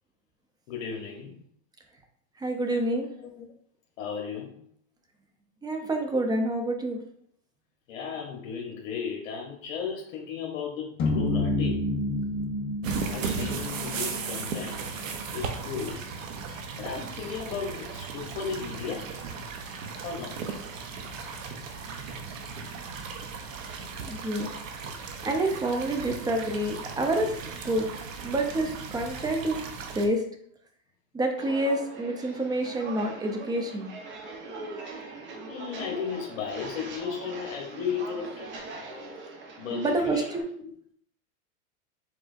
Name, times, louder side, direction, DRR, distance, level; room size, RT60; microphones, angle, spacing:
voice 1, 0.7-1.3 3.2-3.5 4.0-4.6 7.9-11.8 13.0-14.9 15.3-16.1 16.4-19.1 20.0-20.4 35.5-38.5 39.6-40.2 40.6-40.7, left 6 dB, 65° left, 0 dB, 1.0 m, -35 dB
voice 2, 2.4-3.1 5.6-7.0 24.0-24.5 25.2-27.3 27.6-27.9 28.2-29.6 29.9-30.2 31.1-33.9 39.7-40.2, right 1 dB, 10° right, 4 dB, 0.5 m, -27 dB
sound 1, 11.0-15.4, left 2 dB, 45° left, 1.8 m, -30 dB
sound 2, 12.8-30.1, right 5 dB, 85° right, 0.8 m, -36 dB
Walk footsteps, 31.4-40.4, right 3 dB, 30° right, 0.9 m, -41 dB
4.9 x 3.6 x 2.5 m, 0.64 s
hypercardioid pair, 115°, 38 cm